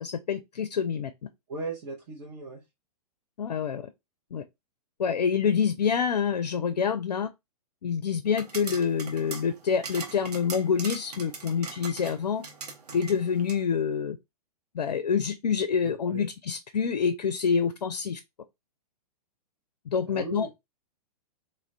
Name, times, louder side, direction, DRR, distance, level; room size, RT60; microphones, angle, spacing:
voice 1, 0.0-1.1 3.4-3.8 4.3-4.4 5.0-7.3 7.8-12.4 12.9-14.2 14.7-18.2 19.9-20.5, left 6 dB, 75° left, 0.4 m, -27 dB
voice 2, 1.5-2.6 15.8-16.3 20.1-20.5, right 3 dB, 40° right, 0.8 m, -37 dB
sound 1, 8.3-13.6, right 4 dB, 75° right, 0.9 m, -41 dB
2.4 x 2.3 x 3.2 m
figure-of-eight pair, 115°, 21 cm